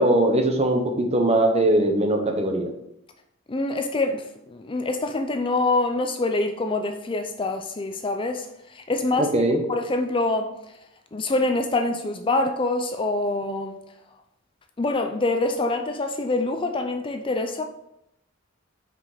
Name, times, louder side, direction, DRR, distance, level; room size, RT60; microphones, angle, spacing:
voice 1, 0.0-2.7 9.2-9.6, right 1 dB, 30° right, 4 dB, 1.1 m, -21 dB
voice 2, 3.5-9.3 9.7-10.5 11.1-13.8 14.8-17.6, left 2 dB, 25° left, 6 dB, 0.5 m, -25 dB
6.0 x 5.1 x 5.0 m, 0.81 s
head